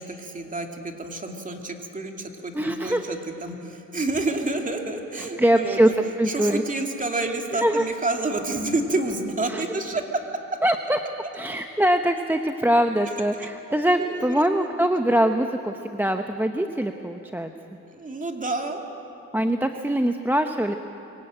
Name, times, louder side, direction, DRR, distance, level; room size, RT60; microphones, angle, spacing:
voice 1, 0.0-6.0 6.3-10.0 13.4-14.9 17.9-18.8, right 2 dB, 25° right, 3 dB, 2.6 m, -29 dB
voice 2, 2.5-3.0 5.2-5.9 6.2-6.6 7.5-7.9 9.5-9.6 10.6-11.0 11.3-17.5 19.3-20.8, right 1 dB, 5° right, 5 dB, 0.8 m, -23 dB
23.5 x 17.5 x 9.0 m, 3.0 s
cardioid pair, 90°, 30 cm